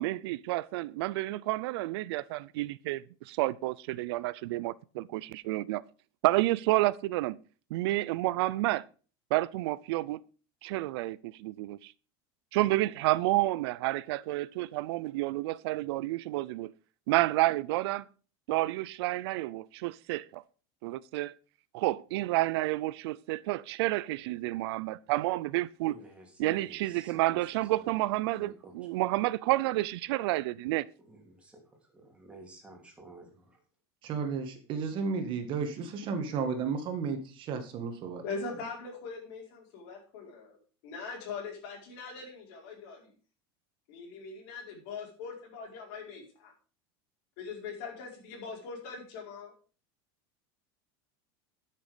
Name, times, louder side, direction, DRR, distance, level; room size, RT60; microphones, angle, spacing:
voice 1, 0.0-5.8 6.2-7.4 7.7-8.8 9.3-10.2 10.6-11.9 12.5-16.7 17.1-18.1 18.5-20.4 20.8-21.3 21.7-25.9 26.4-30.8, right 18 dB, 80° right, 0.5 m, -30 dB
voice 2, 25.9-27.4 27.7-27.9 28.4-28.7 31.0-31.6 31.9-33.6, right 1 dB, 10° right, 2.9 m, -52 dB
voice 3, 34.0-38.2, right 5 dB, 40° right, 1.8 m, -33 dB
voice 4, 38.2-40.6 40.8-43.1 43.9-46.5 47.4-49.5, left 4 dB, 60° left, 4.6 m, -41 dB
11.5 x 6.7 x 5.1 m
supercardioid pair, 160°, 13 cm